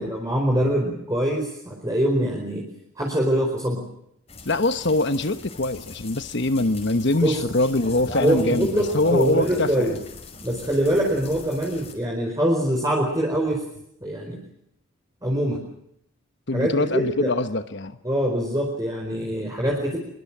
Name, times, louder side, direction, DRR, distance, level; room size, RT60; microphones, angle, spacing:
voice 1, 0.0-2.7 3.0-3.8 7.2-7.4 8.2-9.9 10.4-13.6 14.0-14.4 15.2-15.6 16.5-17.3 18.0-20.0, right 1 dB, 15° right, -1 dB, 4.8 m, -24 dB
sound 1, 4.3-11.9, left 2 dB, 30° left, 5.7 m, -39 dB
voice 2, 4.4-10.0 16.5-18.0, left 2 dB, 55° left, 10 dB, 1.1 m, -23 dB
25.0 x 22.5 x 7.4 m, 0.74 s
head